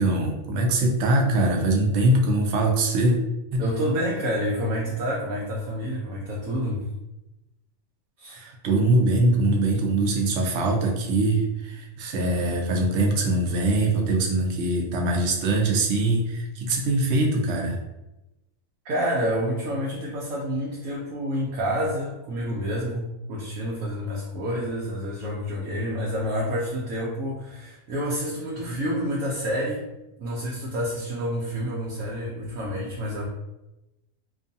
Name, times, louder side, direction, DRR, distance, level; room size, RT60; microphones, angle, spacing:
voice 1, 0.0-3.2 3.5-3.6 8.3-17.8 28.7-28.8, right 2 dB, 65° right, 1 dB, 0.8 m, -22 dB
voice 2, 3.6-6.8 8.2-8.4 18.8-29.8 30.2-33.3, equal, 90° right, -4 dB, 1.0 m, -28 dB
2.5 x 2.3 x 2.6 m, 0.96 s
omnidirectional pair, 1.4 m